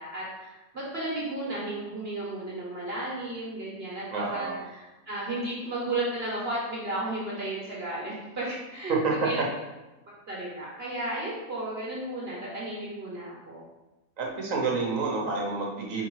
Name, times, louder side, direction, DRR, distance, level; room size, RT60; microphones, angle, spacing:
voice 1, 0.0-9.4 10.3-13.6, right 2 dB, 45° right, -5 dB, 1.6 m, -34 dB
voice 2, 4.1-4.5 8.9-9.0 14.2-16.1, right 4 dB, 65° right, -1 dB, 1.4 m, -29 dB
5.1 x 4.6 x 4.7 m, 1.1 s
omnidirectional pair, 1.5 m